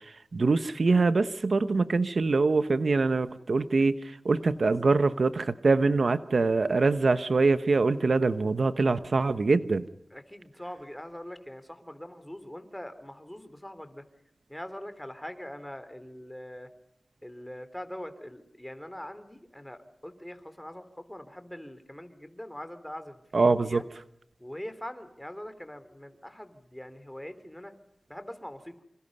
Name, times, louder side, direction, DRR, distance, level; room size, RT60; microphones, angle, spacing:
voice 1, 0.3-3.9 4.2-9.9 23.3-23.8, right 3 dB, 75° right, 12 dB, 1.0 m, -24 dB
voice 2, 10.1-14.1 14.5-16.7 17.2-23.8 24.4-27.7 28.1-28.7, left 1 dB, 10° left, 10 dB, 3.4 m, -42 dB
27.5 x 27.0 x 5.5 m, 0.80 s
wide cardioid pair, 55°, 0 cm